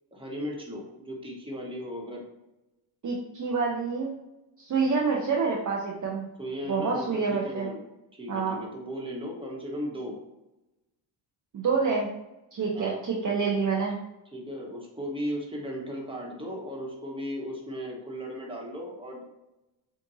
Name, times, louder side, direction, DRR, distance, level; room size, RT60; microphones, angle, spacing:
voice 1, 0.1-2.2 6.4-7.8 8.1-10.2 12.7-13.0 14.3-19.3, equal, 10° right, -2 dB, 1.3 m, -36 dB
voice 2, 3.0-4.2 4.6-6.3 6.7-7.7 8.3-8.6 11.5-12.1 12.5-14.0, right 5 dB, 40° right, -3 dB, 0.7 m, -27 dB
7.3 x 2.6 x 2.7 m, 0.94 s
cardioid pair, 90°, 47 cm